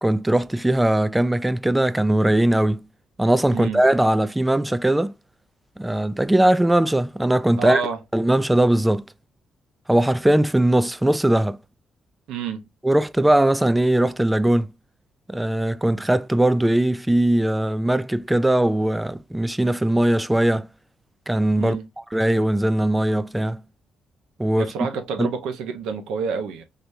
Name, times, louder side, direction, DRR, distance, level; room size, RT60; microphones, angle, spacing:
voice 1, 0.0-2.9 3.2-5.1 5.8-7.8 8.1-9.0 9.9-11.6 12.8-14.7 15.3-20.7 21.3-21.8 22.1-23.6 24.4-24.7 25.2-25.3, right 1 dB, 10° right, 0.4 m, -20 dB
voice 2, 3.5-3.8 7.6-8.0 12.3-12.7 21.6-21.8 24.6-26.6, right 6 dB, 90° right, 0.9 m, -28 dB
4.1 x 3.3 x 2.7 m
cardioid pair, 90°, 0 cm